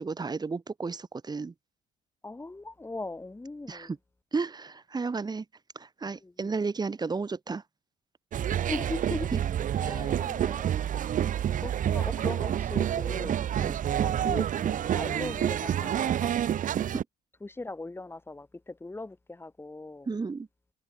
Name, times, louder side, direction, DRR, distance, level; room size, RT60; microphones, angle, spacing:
voice 1, 0.0-1.5 3.7-4.0 4.3-5.4 5.8-7.6 9.3-9.4 9.8-10.1 13.6-13.8 16.9-17.0 20.1-20.5, right 4 dB, 25° right, 4.1 m, -33 dB
voice 2, 2.2-3.9 6.2-6.5 8.7-9.3 9.8-10.7 11.6-13.4 14.0-16.3 17.4-20.1, left 2 dB, 15° left, 5.6 m, -39 dB
sound 1, 8.3-17.0, right 10 dB, 50° right, 1.4 m, -28 dB
cardioid pair, 110°, 17 cm